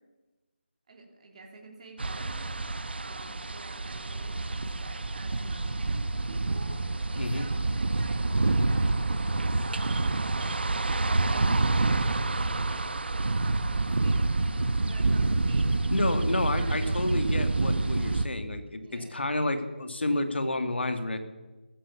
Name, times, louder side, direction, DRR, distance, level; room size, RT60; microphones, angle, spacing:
voice 1, 0.9-2.4 2.9-10.8 11.3-12.9 13.4-14.4 14.8-15.7 16.2-17.0 18.8-19.2, right 3 dB, 35° right, 0 dB, 3.2 m, -48 dB
sound 1, 2.0-18.3, right 2 dB, 65° right, 1.1 m, -27 dB
voice 2, 15.9-21.2, left 2 dB, 75° left, 8 dB, 2.1 m, -30 dB
14.5 x 14.0 x 7.0 m, 1.2 s
figure-of-eight pair, 165°, 6 cm